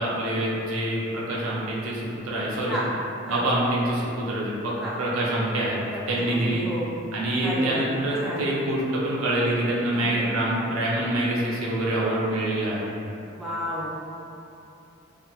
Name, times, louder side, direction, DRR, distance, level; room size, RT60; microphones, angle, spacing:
voice 1, 0.0-2.7 3.3-5.8 6.1-6.6 7.1-12.9, right 1 dB, 90° right, -5 dB, 0.6 m, -26 dB
voice 2, 5.9-6.8 7.4-8.5 9.9-10.2 13.3-13.9, equal, ahead, -9 dB, 0.4 m, -33 dB
2.7 x 2.4 x 2.3 m, 2.7 s
head